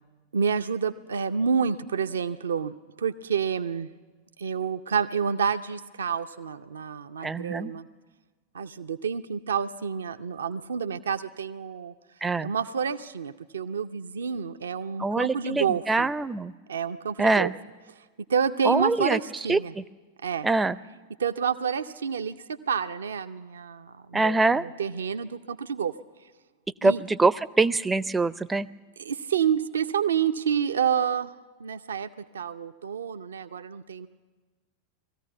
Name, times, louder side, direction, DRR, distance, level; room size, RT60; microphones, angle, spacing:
voice 1, 0.3-3.9 4.4-7.9 8.5-11.9 12.4-16.1 16.7-17.5 18.3-19.7 20.2-20.5 21.2-22.3 22.7-25.9 26.8-27.0 29.0-31.3 31.6-34.1, right 7 dB, 70° right, 9 dB, 0.6 m, -29 dB
voice 2, 7.2-7.7 12.2-12.5 15.0-16.5 17.2-17.5 18.6-19.2 19.5-19.8 20.4-20.8 24.1-24.6 26.8-28.7, right 3 dB, 10° right, 17 dB, 0.5 m, -24 dB
19.5 x 14.5 x 9.3 m, 1.3 s
figure-of-eight pair, 90°, 0 cm